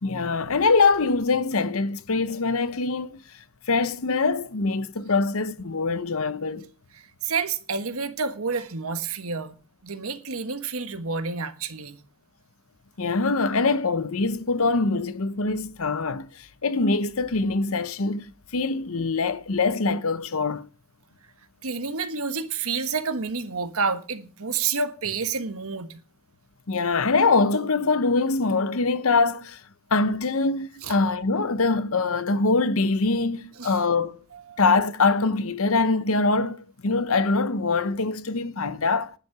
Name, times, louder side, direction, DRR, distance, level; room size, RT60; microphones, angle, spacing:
voice 1, 0.0-3.2 3.7-6.7 13.0-16.3 16.6-18.2 18.5-20.7 26.7-29.6 29.9-34.2 34.6-39.1, left 3 dB, 70° left, 0.8 m, -23 dB
voice 2, 6.9-9.5 9.8-12.0 21.6-26.0 30.8-30.9 33.6-33.8 34.3-34.6, right 5 dB, 75° right, 1.4 m, -29 dB
11.5 x 9.5 x 6.0 m
head